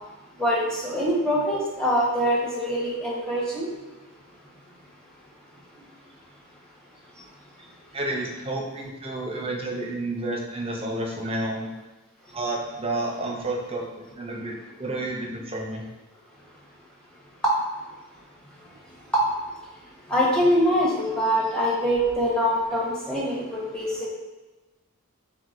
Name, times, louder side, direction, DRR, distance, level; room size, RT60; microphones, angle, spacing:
voice 1, 0.4-3.7 17.4-17.5 19.1-19.2 20.1-24.1, equal, 5° left, -5 dB, 1.0 m, -23 dB
voice 2, 7.9-11.7 12.3-15.8, right 2 dB, 25° right, 0 dB, 0.6 m, -30 dB
4.7 x 3.5 x 2.5 m, 1.1 s
head